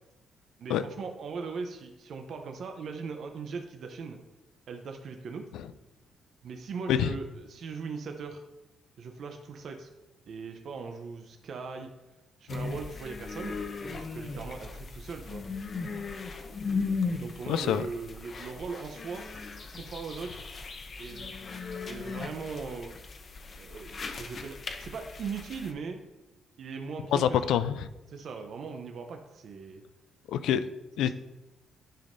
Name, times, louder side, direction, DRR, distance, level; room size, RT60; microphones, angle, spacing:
voice 1, 0.6-4.2 4.7-5.5 6.4-8.4 9.0-9.9 10.3-11.9 12.4-15.4 17.2-19.3 19.7-20.4 21.0-21.3 21.9-23.0 23.6-26.0 26.6-27.5 28.1-29.8 31.0-31.1, right 5 dB, 60° right, 4 dB, 0.6 m, -39 dB
sound 1, 12.5-25.7, left 4 dB, 45° left, 0.7 m, -37 dB
voice 2, 17.5-17.8 27.1-27.9 30.3-30.6 31.0-31.1, left 9 dB, 85° left, 12 dB, 0.4 m, -26 dB
10.0 x 5.3 x 2.6 m, 1.0 s
cardioid pair, 90°, 0 cm